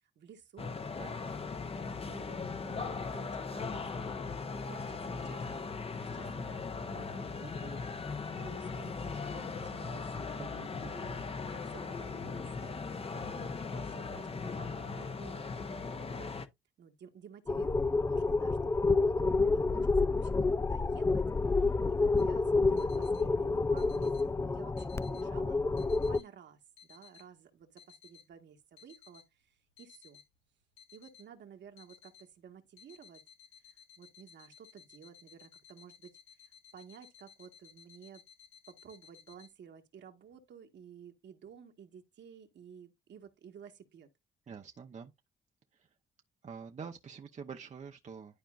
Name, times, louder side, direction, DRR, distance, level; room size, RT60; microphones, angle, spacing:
voice 1, 0.1-4.0 4.4-5.7 6.0-7.8 8.4-10.0 10.7-12.8 13.1-16.3 16.8-30.2 30.9-33.2 33.6-36.2 36.7-38.2 38.7-44.1, right 8 dB, 65° right, 1.5 m, -54 dB
sound 1, 0.6-16.5, left 4 dB, 30° left, 0.8 m, -39 dB
voice 2, 10.4-10.9 44.5-45.1 45.7-45.9 46.4-48.4, right 6 dB, 35° right, 0.8 m, -46 dB
sound 2, 17.5-26.2, left 3 dB, 15° left, 0.3 m, -29 dB
sound 3, 22.2-39.5, left 8 dB, 90° left, 3.9 m, -59 dB
11.5 x 4.4 x 2.5 m
cardioid pair, 90°, 20 cm